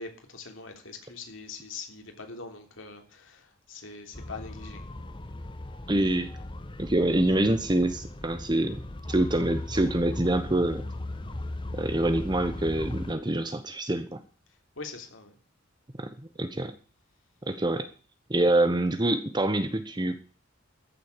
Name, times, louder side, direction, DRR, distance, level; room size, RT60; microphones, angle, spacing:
voice 1, 0.0-4.8 14.8-15.3, left 4 dB, 75° left, 4 dB, 3.3 m, -42 dB
sound 1, 4.1-13.1, left 1 dB, 25° left, 1.1 m, -38 dB
voice 2, 5.9-6.3 6.8-8.8 9.1-10.9 11.7-14.2 16.0-16.7 17.5-17.9 18.3-20.2, right 1 dB, 20° right, 9 dB, 1.0 m, -26 dB
14.0 x 7.6 x 6.7 m, 0.38 s
head